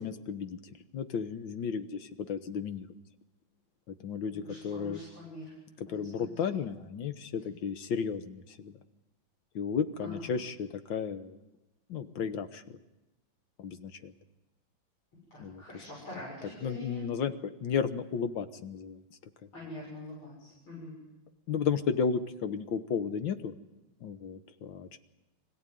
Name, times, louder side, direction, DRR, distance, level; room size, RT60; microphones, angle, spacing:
voice 1, 0.0-2.9 3.9-5.0 5.8-8.8 9.6-11.4 11.9-12.6 13.6-14.1 15.4-15.6 16.6-19.5 21.5-23.5 24.0-25.0, left 6 dB, 75° left, 9 dB, 1.9 m, -34 dB
voice 2, 4.3-5.6 5.8-6.7 7.6-7.7 10.0-10.3 15.3-17.0 19.5-21.0, left 1 dB, 90° left, -5 dB, 8.1 m, -45 dB
26.0 x 16.5 x 9.3 m, 1.0 s
omnidirectional pair, 2.2 m